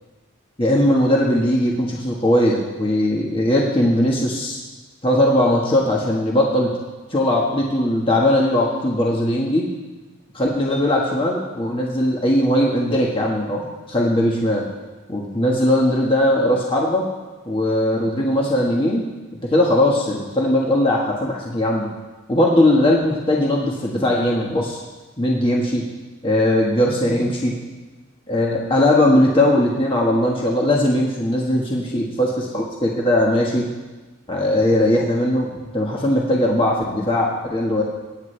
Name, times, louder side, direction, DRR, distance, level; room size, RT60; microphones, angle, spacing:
voice 1, 0.6-4.6 5.0-6.7 7.1-9.7 10.3-14.6 15.1-17.0 17.5-19.0 19.5-21.9 22.3-24.8 25.2-25.8 26.2-27.5 28.3-33.7 34.3-35.5 35.7-37.8, left 1 dB, 25° left, -3 dB, 1.5 m, -19 dB
23.5 x 9.6 x 3.3 m, 1.2 s
head